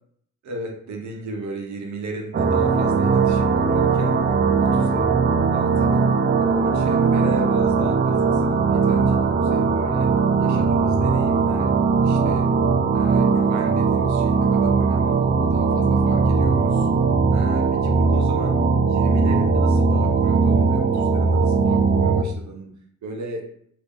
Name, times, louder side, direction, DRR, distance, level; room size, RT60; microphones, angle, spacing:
voice 1, 0.4-4.3 4.6-5.1 5.3-6.0 6.4-10.1 10.4-11.7 12.0-12.5 12.9-16.9 17.3-18.6 18.9-22.7 23.0-23.4, right 2 dB, 65° right, 1 dB, 0.9 m, -35 dB
sound 1, 2.3-22.2, right 4 dB, 35° right, 0.4 m, -19 dB
2.8 x 2.7 x 3.6 m, 0.66 s
cardioid pair, 110°, 30 cm